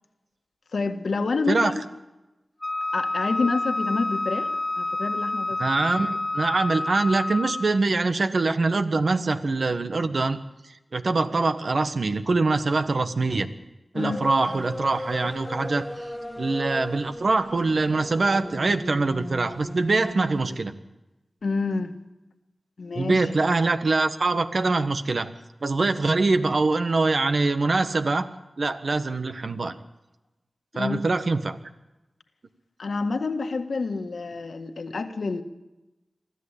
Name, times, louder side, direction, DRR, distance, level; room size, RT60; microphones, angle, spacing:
voice 1, 0.7-1.9 2.9-4.5 4.8-5.6 13.9-14.2 21.4-21.9 22.8-23.3 30.7-31.1 32.8-35.4, left 4 dB, 80° left, 6 dB, 1.7 m, -28 dB
Wind instrument woodwind instrument, 2.6-7.8, left 2 dB, 35° left, 0.6 m, -28 dB
voice 2, 5.6-10.4 10.9-13.5 13.9-16.1 16.4-20.7 22.9-25.3 25.6-28.3 28.6-29.8 30.7-31.6, right 3 dB, 70° right, 9 dB, 1.4 m, -24 dB
sound 1, 14.0-20.6, left 1 dB, 15° left, 1.3 m, -36 dB
23.5 x 14.0 x 8.4 m, 1.0 s
cardioid pair, 50°, 0 cm